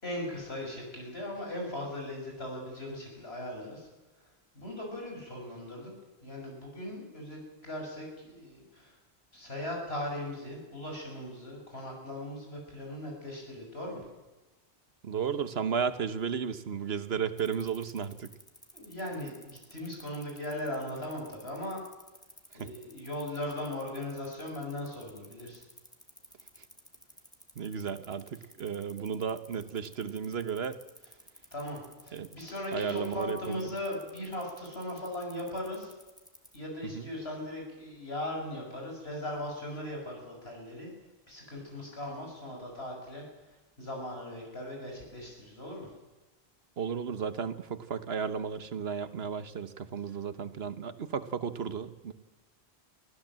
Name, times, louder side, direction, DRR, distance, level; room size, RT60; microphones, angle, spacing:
voice 1, 0.0-3.9 4.5-5.9 6.2-9.0 9.3-14.1 18.7-21.8 22.5-25.6 31.5-35.9 36.5-40.9 41.3-45.9, left 1 dB, 75° left, 0 dB, 7.0 m, -38 dB
voice 2, 15.0-18.3 22.6-22.7 27.6-30.8 32.1-32.3 32.7-33.7 36.9-37.0 46.8-52.1, right 7 dB, 75° right, 13 dB, 1.3 m, -34 dB
sound 1, 17.4-36.6, equal, 5° left, 2.2 m, -53 dB
24.0 x 15.5 x 7.6 m, 1.1 s
omnidirectional pair, 1.1 m